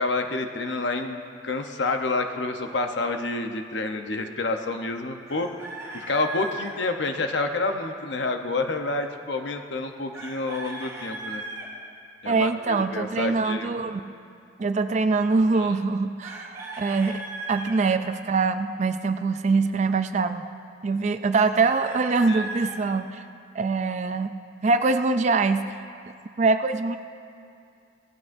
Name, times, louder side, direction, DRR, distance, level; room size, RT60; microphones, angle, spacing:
voice 1, 0.0-5.5 5.9-11.4 12.2-13.7 15.6-15.8 22.3-22.5, left 3 dB, 70° left, 5 dB, 0.9 m, -28 dB
Chicken rooster, 5.3-6.8 10.1-11.7 16.2-17.8 21.3-22.8, right 2 dB, 15° right, 2.0 m, -37 dB
voice 2, 12.3-14.0 14.6-20.4 20.8-23.2 23.5-24.3 24.6-25.7 26.4-27.0, right 4 dB, 40° right, 9 dB, 0.3 m, -23 dB
17.5 x 15.5 x 2.6 m, 2.4 s
head